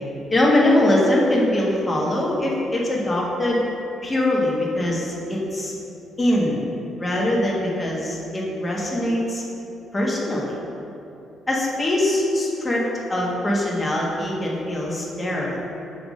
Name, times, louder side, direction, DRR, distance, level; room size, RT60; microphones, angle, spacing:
voice 1, 0.3-3.6 4.0-5.7 6.2-6.6 7.0-9.4 9.9-10.6 11.5-12.8 13.1-15.6, left 1 dB, 25° left, -4 dB, 1.4 m, -22 dB
5.9 x 3.5 x 5.2 m, 2.8 s
supercardioid pair, 65°, 0 cm